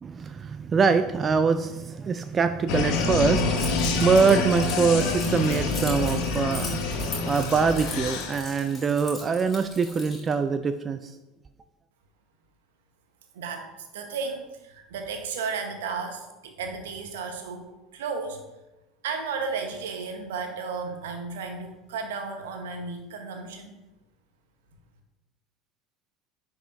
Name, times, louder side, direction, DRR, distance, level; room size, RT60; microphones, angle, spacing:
voice 1, 0.0-11.2, right 5 dB, 30° right, 10 dB, 0.3 m, -24 dB
sound 1, 2.7-8.4, left 3 dB, 55° left, 0.9 m, -27 dB
Keys jangling, 3.6-10.3, left 3 dB, 25° left, 2.3 m, -40 dB
voice 2, 13.3-17.6 17.9-18.4 19.0-23.7, right 5 dB, 70° right, 5 dB, 1.0 m, -34 dB
9.9 x 4.8 x 2.6 m, 1.0 s
figure-of-eight pair, 70°, 0 cm